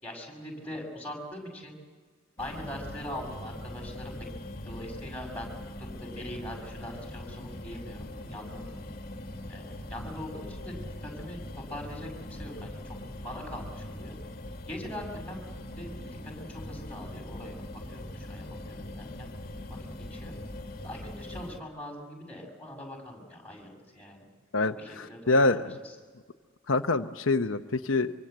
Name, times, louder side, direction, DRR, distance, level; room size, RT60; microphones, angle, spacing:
voice 1, 0.0-1.8 2.4-4.3 4.6-5.5 5.8-8.8 9.5-14.2 14.7-15.4 15.8-17.6 17.9-19.3 19.7-19.8 20.1-20.3 20.8-24.3 24.8-25.7, left 1 dB, 10° left, 1 dB, 6.7 m, -42 dB
sound 1, 2.4-21.6, left 1 dB, 50° left, 2.2 m, -41 dB
voice 2, 24.5-25.6 26.7-28.1, left 2 dB, 85° left, 6 dB, 0.9 m, -25 dB
25.0 x 24.5 x 8.0 m, 1.5 s
head